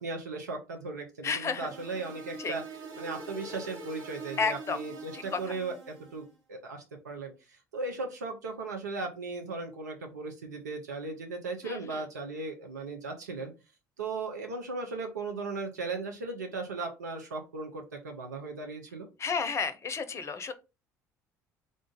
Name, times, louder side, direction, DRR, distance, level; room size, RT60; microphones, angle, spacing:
voice 1, 0.0-2.6 3.0-13.5 14.0-19.1, right 3 dB, 80° right, 0.6 m, -37 dB
voice 2, 1.2-1.7 2.4-2.6 4.4-4.8 5.3-5.4 11.6-12.0 19.2-20.5, left 5 dB, 30° left, 0.6 m, -31 dB
sound 1, 1.4-6.2, right 3 dB, 55° right, 1.3 m, -44 dB
3.7 x 2.5 x 3.7 m
figure-of-eight pair, 55°, 9 cm